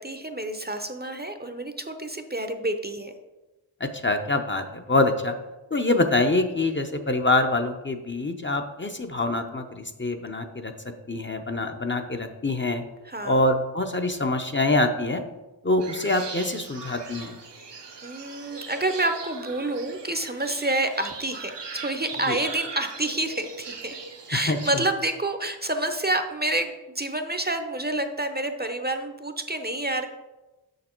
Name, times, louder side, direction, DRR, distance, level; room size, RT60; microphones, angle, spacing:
voice 1, 0.0-3.1 13.0-13.4 18.0-24.0 24.3-30.1, right 2 dB, 25° right, 7 dB, 0.6 m, -28 dB
voice 2, 3.8-5.3 5.7-10.7 11.1-12.8 13.2-15.2 15.6-17.4 22.3-22.4 24.3-24.6, left 2 dB, 25° left, 5 dB, 0.6 m, -25 dB
sound 1, 15.8-24.8, right 4 dB, 75° right, 0.9 m, -40 dB
6.5 x 6.2 x 4.4 m, 1.1 s
wide cardioid pair, 65°, 43 cm